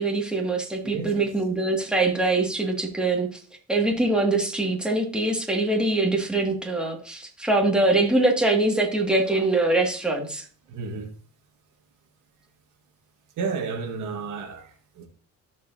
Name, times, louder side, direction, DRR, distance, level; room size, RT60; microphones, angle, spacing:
voice 1, 0.0-3.3 3.7-10.4, right 2 dB, 5° right, 2.1 m, -23 dB
voice 2, 0.8-1.4 10.7-11.1 13.4-15.1, right 5 dB, 85° right, 1.8 m, -32 dB
15.0 x 5.4 x 2.8 m
cardioid pair, 90°, 30 cm